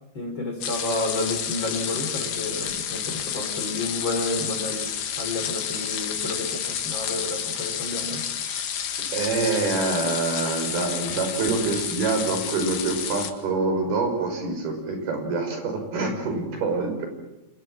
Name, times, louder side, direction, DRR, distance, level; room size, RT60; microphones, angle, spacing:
voice 1, 0.1-4.9 5.2-8.2, left 2 dB, 30° left, 5 dB, 4.9 m, -30 dB
sound 1, 0.6-13.3, left 8 dB, 80° left, 3.9 m, -30 dB
voice 2, 9.1-17.1, right 3 dB, 90° right, 6 dB, 7.4 m, -26 dB
28.5 x 26.0 x 7.6 m, 0.97 s
omnidirectional pair, 4.3 m